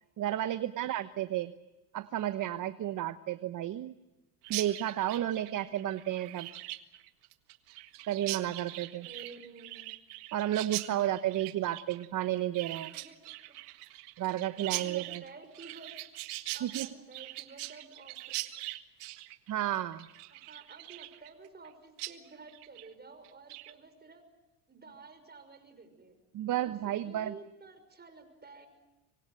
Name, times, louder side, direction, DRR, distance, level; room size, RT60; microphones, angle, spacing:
voice 1, 0.2-1.5 1.9-3.9 4.5-6.5 8.1-9.1 10.3-12.9 14.2-15.2 16.6-16.9 19.5-20.1 26.3-27.3, right 13 dB, 40° right, 12 dB, 1.1 m, -32 dB
Chirp tweet, 4.4-21.7 22.0-22.1 22.5-22.9 23.2-23.7, right 19 dB, 75° right, 1.8 m, -42 dB
voice 2, 9.1-9.9 12.8-13.5 14.6-16.0 16.5-18.4 20.3-24.2 24.7-26.2 26.6-28.7, right 4 dB, 20° right, 8 dB, 6.1 m, -52 dB
26.0 x 24.0 x 7.7 m, 1.1 s
supercardioid pair, 100°, 45 cm